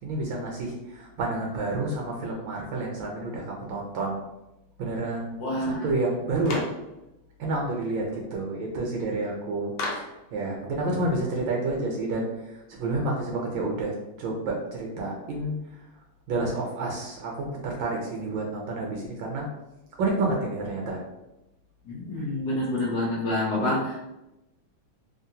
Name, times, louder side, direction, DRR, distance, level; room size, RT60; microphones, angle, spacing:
voice 1, 0.0-4.2 4.8-6.7 7.4-15.8 16.3-19.5 20.0-21.0 22.2-22.3, right 2 dB, 75° right, -1 dB, 1.2 m, -29 dB
voice 2, 5.4-5.9 21.8-24.1, left 1 dB, 60° left, -5 dB, 1.2 m, -28 dB
Clapping, 6.5-6.8 9.8-10.2, left 2 dB, 90° left, 1.5 m, -33 dB
3.6 x 2.1 x 2.7 m, 0.94 s
omnidirectional pair, 2.3 m